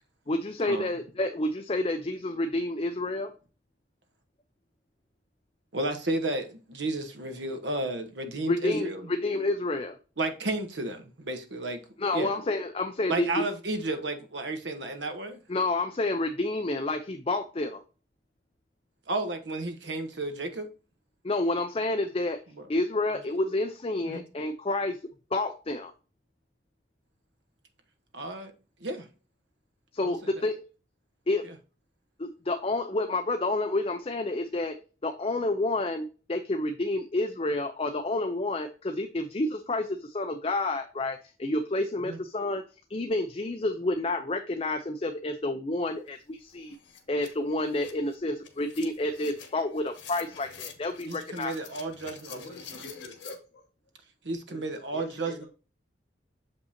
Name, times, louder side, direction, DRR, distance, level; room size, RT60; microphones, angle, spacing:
voice 1, 0.3-3.3 8.5-10.0 12.0-13.4 15.5-17.8 21.2-22.4 22.7-25.0 25.3-25.9 29.9-30.7 31.3-31.4 32.2-34.8 35.0-42.6 42.9-46.8 47.1-51.5, left 2 dB, 30° left, 0.5 m, -29 dB
voice 2, 5.7-9.1 10.2-11.8 12.1-12.3 13.1-15.4 19.1-20.7 24.0-24.2 28.1-28.5 28.8-29.1 30.0-30.3 31.4-31.5 42.0-42.2 51.1-52.4 54.2-55.4, right 2 dB, 70° right, 1.1 m, -32 dB
sound 1, 46.1-46.2 46.5-53.4, left 7 dB, 85° left, 1.3 m, -48 dB
voice 3, 52.3-53.7 54.5-54.6 54.9-55.5, left 2 dB, 60° left, 2.4 m, -44 dB
6.9 x 5.3 x 2.7 m
head